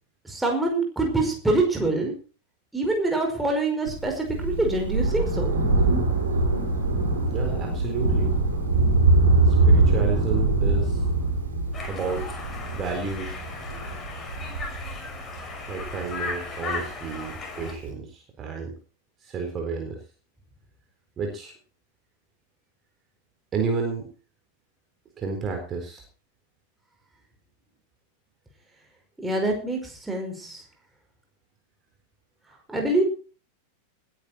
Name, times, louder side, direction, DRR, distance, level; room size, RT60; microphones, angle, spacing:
voice 1, 0.3-2.1 2.7-5.5 29.2-30.6 32.7-33.0, right 2 dB, 5° right, 2 dB, 5.3 m, -25 dB
Thunder, 3.9-16.7 17.6-17.7, right 2 dB, 70° right, 6.1 m, -23 dB
voice 2, 7.3-8.3 9.5-11.0 11.9-12.3 12.7-13.4 15.7-18.7 19.2-20.0 21.2-21.5 23.5-24.1 25.2-26.0, right 5 dB, 25° right, 2 dB, 4.1 m, -31 dB
Conversation, 11.7-17.7, left 4 dB, 20° left, 5.8 m, -36 dB
20.5 x 10.5 x 4.4 m, 0.38 s
figure-of-eight pair, 90°, 0 cm